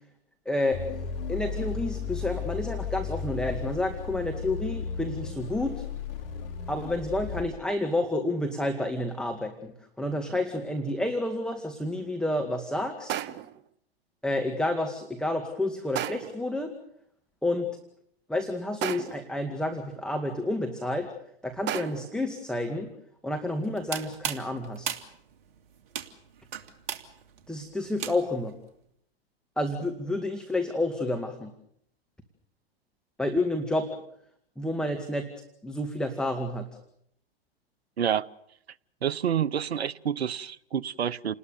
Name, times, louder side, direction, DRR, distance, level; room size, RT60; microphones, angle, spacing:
voice 1, 0.5-5.8 6.7-13.2 14.2-16.7 17.4-17.7 18.3-21.1 21.4-22.9 23.2-25.0 27.5-28.6 29.6-31.5 33.2-33.9 34.6-35.3 35.6-36.7, left 1 dB, ahead, 2.2 m, -30 dB
sound 1, 0.7-7.4, left 6 dB, 65° left, 4.2 m, -35 dB
sound 2, 10.8-10.9 13.1-13.7 15.9-16.5 18.8-19.4 21.7-22.2, right 11 dB, 35° right, 1.1 m, -34 dB
sound 3, 23.6-28.5, right 8 dB, 55° right, 2.7 m, -37 dB
voice 2, 39.0-41.3, right 9 dB, 85° right, 0.9 m, -28 dB
29.5 x 20.0 x 7.0 m
hypercardioid pair, 110°, 31 cm